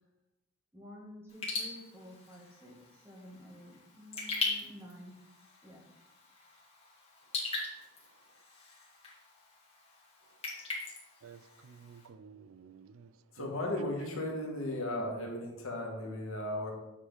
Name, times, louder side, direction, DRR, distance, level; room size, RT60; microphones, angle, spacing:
voice 1, 0.7-5.1 5.6-5.8, left 1 dB, 10° right, -1 dB, 1.4 m, -51 dB
Raindrop / Drip, 1.3-12.1, left 3 dB, 25° left, 2.0 m, -41 dB
voice 2, 11.2-13.5, right 6 dB, 65° right, 13 dB, 0.4 m, -53 dB
voice 3, 13.3-16.7, left 1 dB, 65° left, 0 dB, 1.7 m, -35 dB
8.3 x 5.2 x 3.9 m, 0.94 s
head